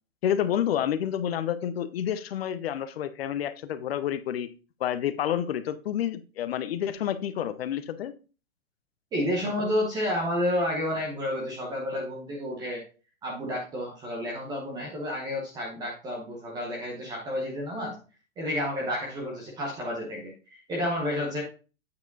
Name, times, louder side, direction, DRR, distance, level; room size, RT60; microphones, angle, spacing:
voice 1, 0.2-4.5 4.8-8.1, left 10 dB, 45° left, 12 dB, 0.8 m, -29 dB
voice 2, 9.1-12.8 13.2-18.0 18.4-21.4, left 1 dB, 10° right, -1 dB, 0.9 m, -30 dB
8.5 x 4.9 x 3.9 m, 0.34 s
hypercardioid pair, 160°, 41 cm